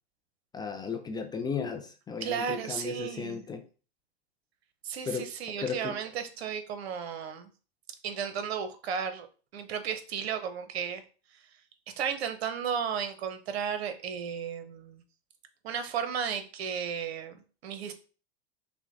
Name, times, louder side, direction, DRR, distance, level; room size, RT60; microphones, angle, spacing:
voice 1, 0.5-3.6 5.1-5.3 5.6-6.0, left 5 dB, 15° left, 0.4 m, -35 dB
voice 2, 2.2-3.4 4.8-7.5 8.0-9.3 9.5-11.0 12.0-15.0 15.6-17.4 17.6-17.9, right 7 dB, 70° right, 0.9 m, -34 dB
5.9 x 2.2 x 3.9 m
hypercardioid pair, 110°, 32 cm